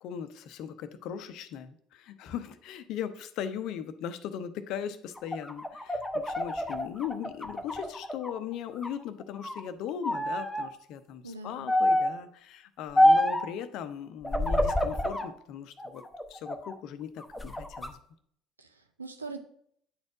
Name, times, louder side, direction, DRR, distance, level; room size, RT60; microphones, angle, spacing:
voice 1, 0.0-16.0 16.3-18.0, left 9 dB, 55° left, 11 dB, 0.6 m, -38 dB
sound 1, 5.2-8.4 8.8-9.6 10.0-10.7 11.7-12.2 13.0-13.5 14.2-15.3 15.8-16.7 17.2-17.9, left 1 dB, 10° left, 0.8 m, -27 dB
voice 2, 11.2-11.7 18.6-19.4, right 3 dB, 85° right, 6 dB, 0.5 m, -42 dB
9.5 x 4.3 x 4.7 m, 0.65 s
figure-of-eight pair, 60°, 0 cm